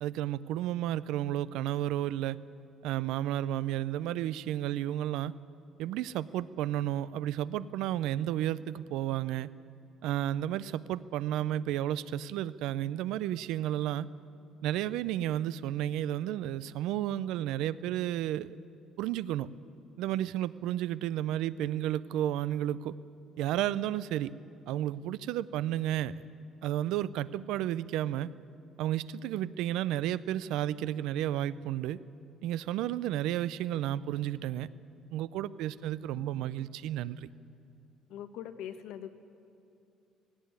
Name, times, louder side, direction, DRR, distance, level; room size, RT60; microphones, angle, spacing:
voice 1, 0.0-2.4 2.8-5.3 5.8-9.5 10.0-14.1 14.6-18.6 19.0-19.5 20.0-22.9 23.4-24.3 24.7-26.1 26.6-28.3 28.8-32.0 32.4-34.7 35.1-37.3, right 12 dB, 80° right, 17 dB, 0.5 m, -32 dB
voice 2, 38.1-39.1, left 10 dB, 80° left, 8 dB, 1.3 m, -41 dB
18.0 x 17.5 x 9.6 m, 2.6 s
cardioid pair, 170°, 0 cm